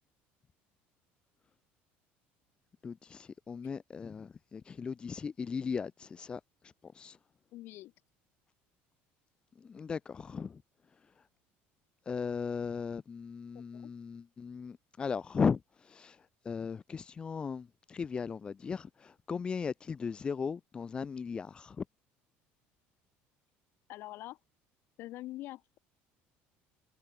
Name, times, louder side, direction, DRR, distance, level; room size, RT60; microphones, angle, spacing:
voice 1, 2.8-6.4 6.9-7.2 9.7-10.5 12.1-15.6 15.9-16.2 16.4-21.8, left 5 dB, 20° left, 1.2 m, -37 dB
voice 2, 7.5-7.9 13.5-13.9 23.9-24.4 25.0-25.6, left 16 dB, 55° left, 5.6 m, -44 dB
cardioid pair, 160°, 5 cm